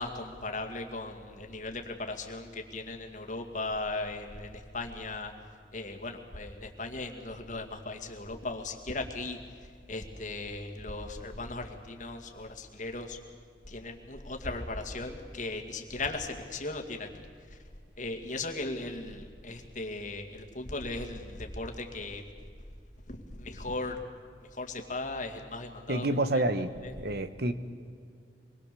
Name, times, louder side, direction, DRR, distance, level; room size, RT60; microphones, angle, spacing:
voice 1, 0.0-5.3 5.7-9.4 9.9-13.2 13.7-17.2 17.5-17.6 18.0-22.2 23.1-24.0 24.5-26.1 26.3-26.4 26.8-26.9, left 2 dB, 45° left, 3 dB, 2.2 m, -37 dB
voice 2, 25.9-26.7 27.0-27.5, right 1 dB, 60° right, 11 dB, 1.1 m, -28 dB
25.5 x 21.5 x 6.9 m, 2.2 s
head